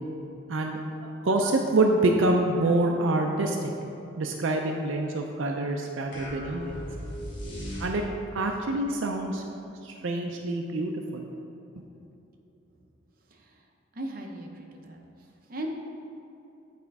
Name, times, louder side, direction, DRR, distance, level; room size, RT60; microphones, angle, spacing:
voice 1, 1.2-3.7 4.2-6.8 7.8-8.0 8.3-9.4 9.8-11.2, right 2 dB, 75° right, 2 dB, 0.5 m, -26 dB
sound 1, 6.1-8.4, left 1 dB, 60° left, 1.5 m, -37 dB
voice 2, 13.3-13.6 13.9-15.0 15.5-15.7, right 1 dB, 45° right, 1 dB, 0.8 m, -38 dB
8.3 x 4.3 x 4.7 m, 2.9 s
head